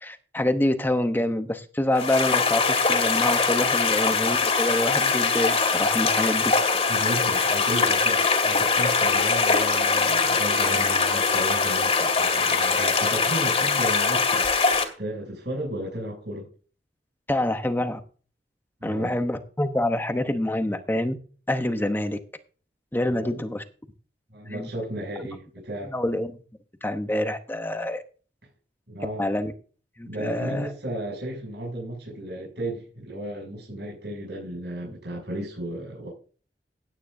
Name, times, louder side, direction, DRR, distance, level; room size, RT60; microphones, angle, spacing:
voice 1, 0.0-6.5 17.3-18.0 18.8-21.2 21.5-22.2 22.9-23.6 24.5-24.7 25.9-26.4 26.8-28.0 29.2-29.5 30.0-30.7, left 1 dB, 10° left, 0.9 m, -26 dB
sound 1, 2.0-14.8, left 4 dB, 35° left, 2.2 m, -22 dB
voice 2, 6.9-16.5 18.8-19.2 23.1-23.5 24.3-25.9 28.9-29.3 30.0-36.1, right 1 dB, 75° right, 6.9 m, -34 dB
16.5 x 9.3 x 2.7 m
head